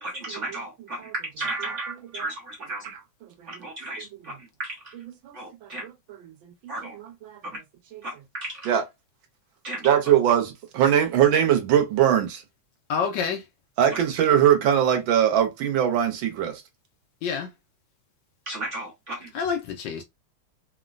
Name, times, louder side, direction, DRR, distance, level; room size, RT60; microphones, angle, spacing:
voice 1, 0.0-2.9 3.5-5.0 5.3-5.8 6.7-7.0 8.0-8.7 9.6-9.9 13.9-14.0 18.5-19.3, right 2 dB, 50° right, 0.9 m, -34 dB
voice 2, 9.8-12.4 13.8-16.6, right 9 dB, 75° right, 1.4 m, -21 dB
voice 3, 12.9-13.5 17.2-17.5 19.3-20.0, left 6 dB, 75° left, 1.2 m, -27 dB
3.7 x 2.1 x 2.4 m
omnidirectional pair, 2.3 m